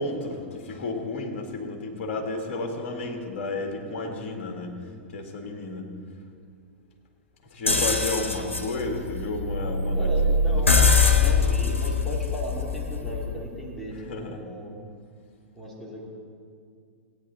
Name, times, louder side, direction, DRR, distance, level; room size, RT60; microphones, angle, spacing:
voice 1, 0.0-4.7 5.1-5.9 7.5-10.1 10.5-11.2 14.1-14.4, left 2 dB, 45° left, 2 dB, 1.9 m, -32 dB
sound 1, 7.7-13.5, left 4 dB, 80° left, 1.1 m, -23 dB
voice 2, 9.9-10.8 11.1-14.7 15.5-16.1, right 1 dB, ahead, -6 dB, 2.6 m, -36 dB
17.0 x 9.0 x 4.1 m, 2.2 s
figure-of-eight pair, 100°, 7 cm